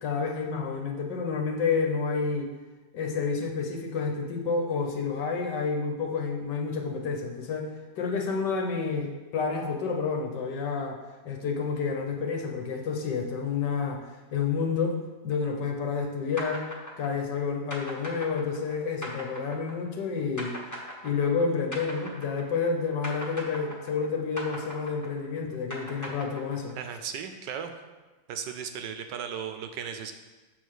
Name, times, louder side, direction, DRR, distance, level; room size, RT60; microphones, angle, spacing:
voice 1, 0.0-2.5 2.9-7.7 8.0-11.0 11.2-14.0 14.3-15.0 15.2-16.7 17.0-20.5 21.0-26.7, left 5 dB, 70° left, 1 dB, 1.5 m, -29 dB
sound 1, 16.4-22.7 23.0-26.9, equal, 15° left, 0.8 m, -39 dB
voice 2, 26.8-27.7 28.3-30.1, right 7 dB, 75° right, 7 dB, 1.1 m, -36 dB
6.9 x 3.9 x 6.4 m, 1.2 s
omnidirectional pair, 2.1 m